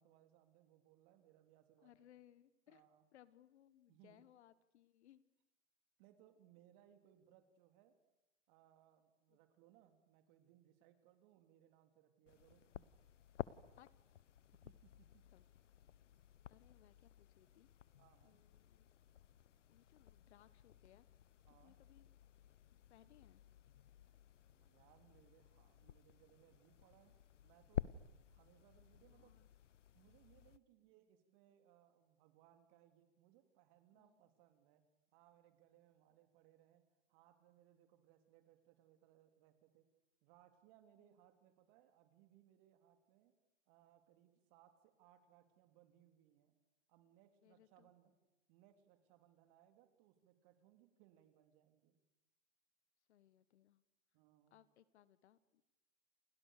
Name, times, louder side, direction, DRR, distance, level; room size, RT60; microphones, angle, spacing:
voice 1, 0.0-2.1 2.7-3.1 3.9-4.3 6.0-7.9 8.5-12.9 14.5-15.3 18.0-18.4 21.5-21.8 24.5-27.9 28.2-29.5 29.9-34.8 35.1-36.8 37.1-39.9 40.2-43.3 43.7-46.6 46.9-48.2 48.5-52.0 54.1-54.6, right 12 dB, 45° right, 7 dB, 3.7 m, -69 dB
voice 2, 1.8-2.8 3.1-5.2 9.3-9.4 13.8-13.9 15.3-15.5 16.5-17.7 18.2-18.9 19.7-21.1 21.5-22.1 22.9-23.4 29.1-29.5 33.9-34.2 41.0-41.2 47.4-47.9 53.1-53.8 54.5-55.6, left 12 dB, 65° left, 16 dB, 1.5 m, -67 dB
sound 1, 12.3-30.6, left 10 dB, 80° left, 1.1 m, -53 dB
29.5 x 28.0 x 6.8 m, 1.0 s
hypercardioid pair, 115°, 36 cm